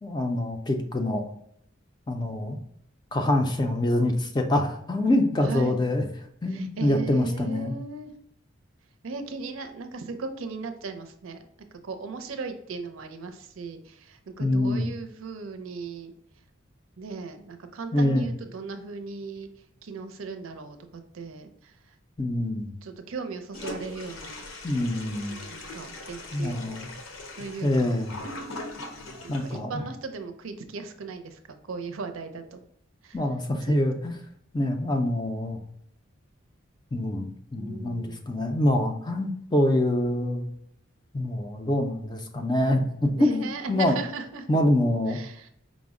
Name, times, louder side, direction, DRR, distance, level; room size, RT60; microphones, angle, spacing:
voice 1, 0.0-1.2 2.1-2.6 3.1-6.0 6.4-7.7 14.4-14.9 17.9-18.3 22.2-22.7 24.6-25.4 26.3-26.9 27.6-28.2 29.3-29.8 33.1-34.2 34.5-35.6 36.9-40.5 41.1-44.0 44.5-45.2, left 1 dB, 20° left, 4 dB, 0.4 m, -25 dB
voice 2, 5.4-5.8 6.5-8.1 9.0-11.4 11.7-16.1 17.0-19.5 19.8-21.9 22.8-24.4 25.5-26.7 27.3-28.0 29.2-31.4 31.7-32.6 33.0-33.2 33.7-33.8 37.5-38.3 43.1-44.5 45.1-45.5, right 4 dB, 80° right, 7 dB, 0.5 m, -37 dB
Toilet flush, 23.5-29.6, left 2 dB, 80° left, 0.7 m, -40 dB
5.0 x 2.1 x 3.6 m, 0.69 s
head